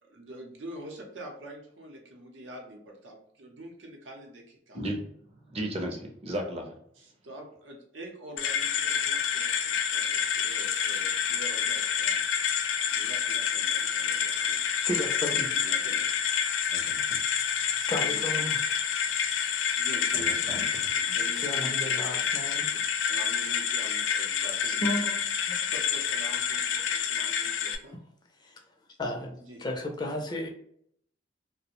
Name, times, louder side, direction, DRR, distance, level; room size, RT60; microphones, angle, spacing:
voice 1, 0.0-4.9 6.9-12.4 12.9-14.6 15.5-16.1 18.0-18.5 19.8-20.4 20.7-22.8 23.1-25.0 25.4-28.0 29.4-29.6, right 1 dB, 90° right, 1 dB, 0.7 m, -46 dB
voice 2, 5.5-6.6 16.7-17.0 20.1-20.6, right 1 dB, 35° right, 2 dB, 0.5 m, -34 dB
sound 1, 8.4-27.8, left 7 dB, 90° left, 0.3 m, -28 dB
sound 2, 9.6-13.2, right 2 dB, 55° right, 0.9 m, -49 dB
voice 3, 14.8-15.5 17.8-18.6 21.1-22.7 24.7-25.2 25.5-25.6 27.2-27.5 28.4-28.5 29.0-30.5, left 1 dB, 25° left, 2 dB, 0.4 m, -34 dB
2.5 x 2.0 x 2.9 m, 0.67 s
head